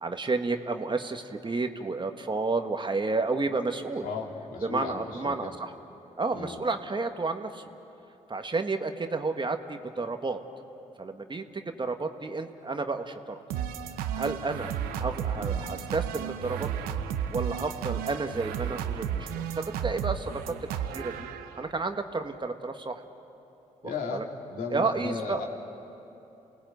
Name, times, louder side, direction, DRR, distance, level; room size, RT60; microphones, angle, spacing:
voice 1, 0.0-4.1 4.6-5.7 6.2-7.6 8.3-10.4 11.0-13.3 14.1-16.9 17.3-21.3 21.6-23.0 24.1-24.2 24.7-25.5, right 3 dB, 30° right, 7 dB, 1.5 m, -31 dB
voice 2, 4.0-5.5 6.3-6.6 15.3-15.6 23.8-25.5, left 4 dB, 65° left, 0 dB, 3.0 m, -36 dB
sound 1, 13.5-21.7, right 9 dB, 80° right, 0.9 m, -33 dB
28.0 x 18.5 x 8.0 m, 2.9 s
hypercardioid pair, 45°, 15 cm